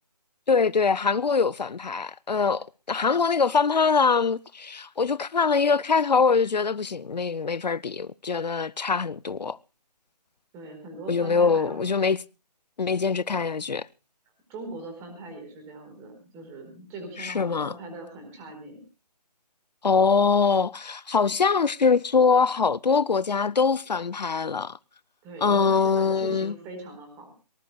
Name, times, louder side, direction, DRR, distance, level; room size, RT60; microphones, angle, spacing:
voice 1, 0.5-9.6 11.1-12.2 12.8-13.9 17.2-17.8 19.8-24.8 25.4-26.6, left 5 dB, 80° left, 0.7 m, -23 dB
voice 2, 10.5-11.9 14.5-18.8 25.2-27.3, right 2 dB, 15° right, 4.5 m, -40 dB
23.5 x 19.5 x 2.3 m
figure-of-eight pair, 155°, 21 cm